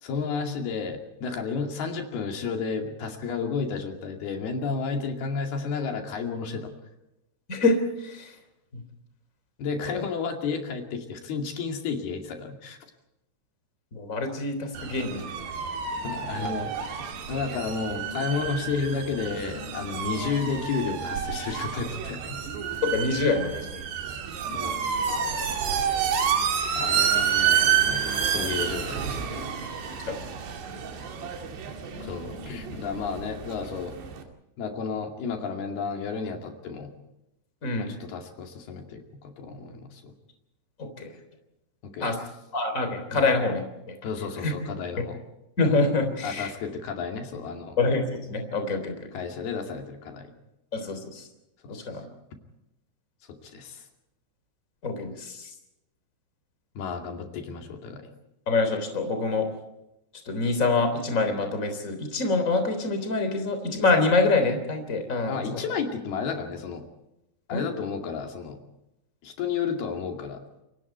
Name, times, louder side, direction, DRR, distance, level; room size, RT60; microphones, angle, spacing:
voice 1, 0.0-6.7 9.6-12.8 16.0-16.7 17.3-22.4 24.5-24.9 26.8-29.5 32.0-34.0 34.6-36.9 37.7-40.1 41.8-42.1 43.1-43.2 44.0-45.2 46.2-47.8 49.1-50.3 51.6-51.9 53.3-53.9 56.8-58.1 65.3-66.8 67.5-68.6 69.2-70.4, left 5 dB, 60° left, 3 dB, 4.1 m, -32 dB
voice 2, 7.5-8.3 8.7-8.8 9.8-10.0 13.9-15.3 22.8-23.8 30.0-30.3 37.6-37.9 40.8-41.1 42.0-42.1 42.5-43.9 44.4-44.5 45.6-46.5 47.8-49.1 50.7-51.3 51.7-52.0 54.8-55.5 58.5-59.5 60.2-65.6 67.5-67.7, left 3 dB, 20° left, 7 dB, 3.2 m, -26 dB
sound 1, 14.7-34.2, right 8 dB, 65° right, 4.2 m, -29 dB
29.0 x 23.5 x 4.6 m, 0.88 s
omnidirectional pair, 5.5 m